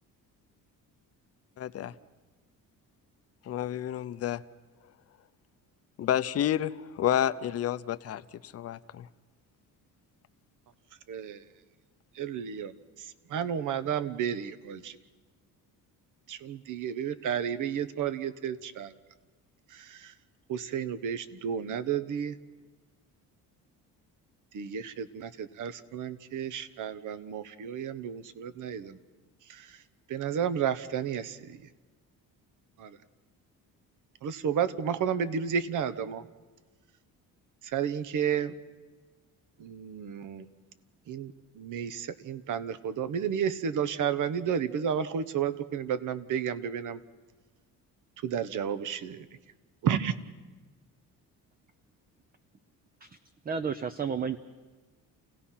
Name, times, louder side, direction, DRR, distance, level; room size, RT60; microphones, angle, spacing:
voice 1, 1.6-1.9 3.5-4.4 6.0-9.1, left 11 dB, 45° left, 11 dB, 0.7 m, -30 dB
voice 2, 11.1-11.4 12.1-12.7 13.0-15.0 16.3-18.9 19.7-20.1 20.5-22.4 24.5-29.0 29.5-29.8 30.1-31.7 32.8-33.0 34.2-36.3 37.6-38.5 39.6-40.5 41.1-47.0 48.2-49.3 49.8-50.1, right 8 dB, 60° right, 14 dB, 1.1 m, -32 dB
voice 3, 53.4-54.4, right 6 dB, 25° right, 11 dB, 0.6 m, -32 dB
29.0 x 17.0 x 5.8 m, 1.3 s
cardioid pair, 120°, 34 cm